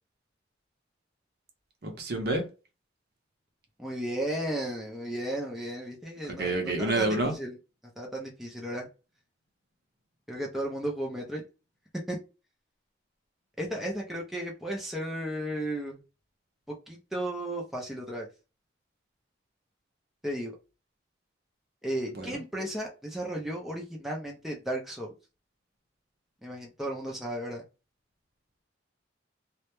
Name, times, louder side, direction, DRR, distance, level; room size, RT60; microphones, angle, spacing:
voice 1, 1.8-2.5 6.3-7.3 22.2-22.4, right 2 dB, 55° right, 0.6 m, -28 dB
voice 2, 3.8-7.5 8.0-8.9 10.3-11.4 12.1-12.2 13.6-16.0 16.9-18.3 20.2-20.5 21.8-25.1 26.4-27.6, right 1 dB, ahead, 0.4 m, -34 dB
2.1 x 2.0 x 2.9 m
head